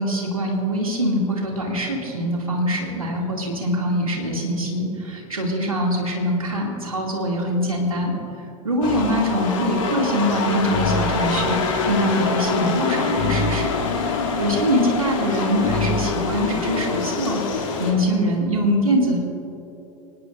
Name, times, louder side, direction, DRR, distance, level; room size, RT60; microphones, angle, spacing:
voice 1, 0.0-11.6 11.9-13.7 14.0-19.2, equal, 90° right, -1 dB, 2.7 m, -23 dB
sound 1, 8.8-17.9, left 4 dB, 70° left, 2.8 m, -24 dB
24.0 x 19.5 x 2.7 m, 2.9 s
figure-of-eight pair, 85°, 17 cm